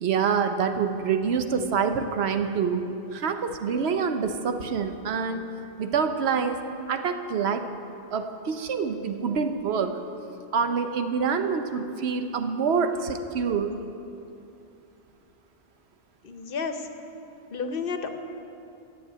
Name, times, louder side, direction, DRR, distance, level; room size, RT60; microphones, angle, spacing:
voice 1, 0.0-2.9 3.1-5.5 5.8-7.6 8.1-9.9 10.5-13.8, right 6 dB, 80° right, 7 dB, 1.0 m, -26 dB
voice 2, 16.2-16.9 17.5-18.1, left 5 dB, 60° left, 7 dB, 0.9 m, -31 dB
10.0 x 7.1 x 8.9 m, 2.8 s
omnidirectional pair, 1.1 m